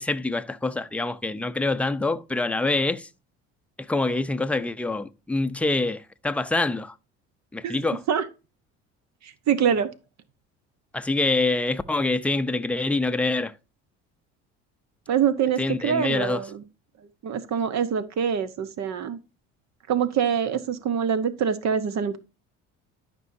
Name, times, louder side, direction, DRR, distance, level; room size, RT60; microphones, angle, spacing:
voice 1, 0.0-3.1 3.8-6.9 7.5-8.0 10.9-13.5 15.6-16.4, left 2 dB, 5° left, 0.6 m, -25 dB
voice 2, 9.2-9.9 15.1-16.6 17.2-19.2 19.9-22.2, right 7 dB, 55° right, 1.1 m, -25 dB
12.5 x 5.4 x 2.7 m
supercardioid pair, 90°, 33 cm